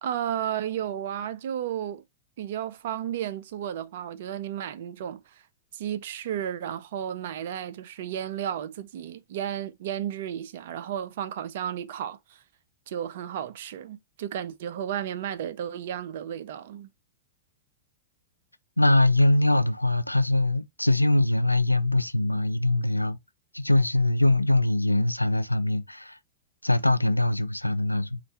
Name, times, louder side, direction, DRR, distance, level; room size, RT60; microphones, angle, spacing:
voice 1, 0.0-2.0 2.4-5.4 5.7-12.4 12.9-16.9, right 10 dB, 55° right, 0.5 m, -33 dB
voice 2, 18.8-23.2 23.5-26.2 26.6-28.2, left 2 dB, 85° left, 0.3 m, -22 dB
4.2 x 2.5 x 4.1 m
figure-of-eight pair, 90°, 0 cm